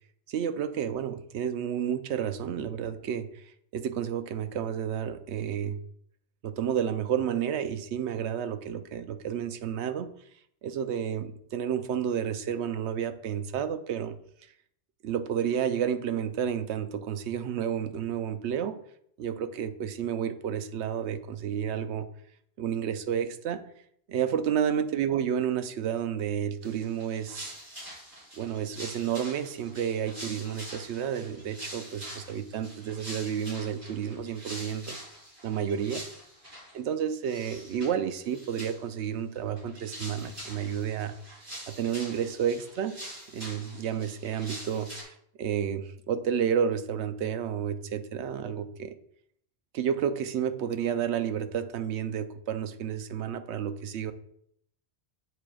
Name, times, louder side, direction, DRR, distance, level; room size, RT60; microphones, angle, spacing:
voice 1, 0.3-5.8 6.4-10.1 10.6-14.2 15.0-18.8 19.2-22.1 22.6-23.6 24.1-27.5 28.4-35.0 35.4-36.0 36.7-41.1 41.7-42.9 43.3-48.9 49.7-54.1, right 8 dB, 80° right, 10 dB, 0.9 m, -31 dB
sound 1, 26.6-36.8 37.2-37.9 38.2-39.0 39.4-45.0, right 1 dB, 50° right, 3.2 m, -45 dB
8.2 x 7.3 x 2.3 m, 0.68 s
omnidirectional pair, 1.1 m